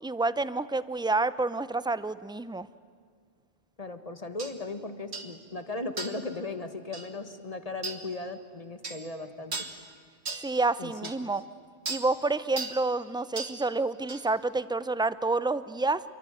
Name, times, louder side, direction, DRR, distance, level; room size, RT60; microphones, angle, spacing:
voice 1, 0.0-2.7 10.3-11.4 11.9-16.0, right 3 dB, 5° right, 15 dB, 0.4 m, -28 dB
voice 2, 3.8-9.6 10.8-11.3, left 3 dB, 35° left, 9 dB, 1.7 m, -37 dB
sound 1, 4.4-4.5 5.1-5.3 6.0-6.3 6.9-7.1 7.8-8.0 8.8-9.0 9.5-9.8 10.3-10.5 11.0-11.2 11.9-12.1 12.6-12.8 13.4-13.6 14.1-14.2, right 4 dB, 70° right, 2.1 m, -36 dB
27.5 x 23.0 x 9.2 m, 2.1 s
omnidirectional pair, 1.1 m